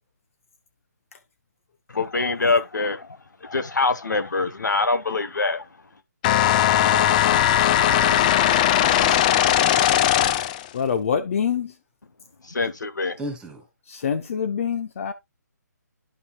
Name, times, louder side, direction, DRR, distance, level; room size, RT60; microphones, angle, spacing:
voice 1, 1.9-3.1 3.4-5.6 12.5-13.2, left 3 dB, 80° left, 1.1 m, -24 dB
sound 1, 6.2-10.7, left 12 dB, 25° left, 0.4 m, -19 dB
voice 2, 6.7-10.4 13.2-13.6, right 2 dB, 10° right, 2.5 m, -38 dB
voice 3, 10.7-11.7 13.9-15.1, left 7 dB, 45° left, 0.9 m, -25 dB
11.0 x 5.6 x 2.3 m
figure-of-eight pair, 145°, 10 cm